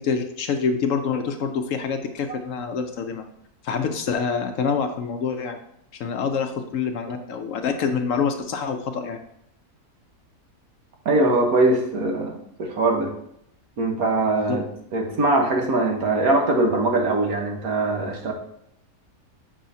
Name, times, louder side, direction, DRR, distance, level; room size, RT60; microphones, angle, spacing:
voice 1, 0.0-3.2 3.6-5.6 6.0-9.2 14.5-14.6, left 6 dB, 65° left, 6 dB, 1.0 m, -26 dB
voice 2, 11.0-13.1 13.8-14.6 14.9-18.3, right 2 dB, 75° right, 1 dB, 1.6 m, -21 dB
7.5 x 5.5 x 2.7 m, 0.73 s
omnidirectional pair, 1.6 m